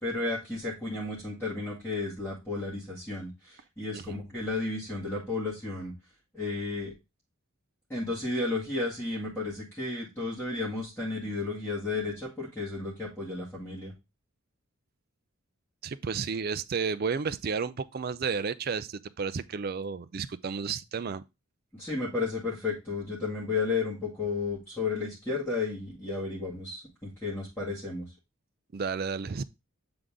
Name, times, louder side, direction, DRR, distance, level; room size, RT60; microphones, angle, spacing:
voice 1, 0.0-5.9 6.3-6.9 7.9-13.9 21.8-28.1, left 3 dB, 10° left, 2.0 m, -33 dB
voice 2, 15.8-21.2 28.7-29.4, right 5 dB, 45° right, 0.4 m, -32 dB
7.9 x 3.8 x 3.6 m
head